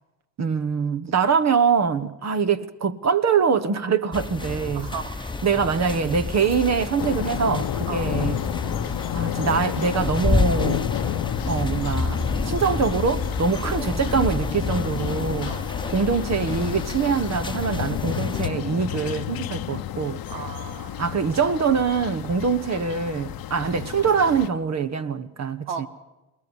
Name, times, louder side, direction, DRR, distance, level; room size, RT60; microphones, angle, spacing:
voice 1, 0.4-4.9 5.4-8.4 9.1-10.8 11.5-15.5 15.9-20.2 21.0-25.9, right 6 dB, 40° right, 1.3 m, -24 dB
sound 1, 4.1-18.5, left 3 dB, 10° left, 1.2 m, -29 dB
voice 2, 4.7-5.1 7.9-8.1 13.5-13.8 15.5-15.7 20.3-21.2 25.7-25.9, right 6 dB, 85° right, 2.1 m, -35 dB
sound 2, 7.0-24.5, left 12 dB, 60° left, 1.1 m, -31 dB
22.0 x 19.0 x 7.2 m
supercardioid pair, 75°, 40 cm